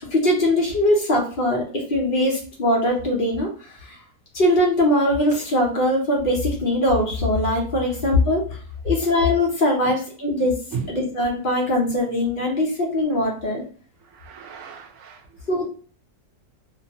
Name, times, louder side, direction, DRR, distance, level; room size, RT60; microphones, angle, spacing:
voice 1, 0.1-4.0 4.3-10.6 10.9-13.6 15.5-15.7, left 1 dB, 60° left, 0.5 m, -21 dB
voice 2, 10.4-11.0 14.0-15.5, right 6 dB, 70° right, 0.8 m, -36 dB
2.6 x 2.3 x 2.7 m
omnidirectional pair, 1.7 m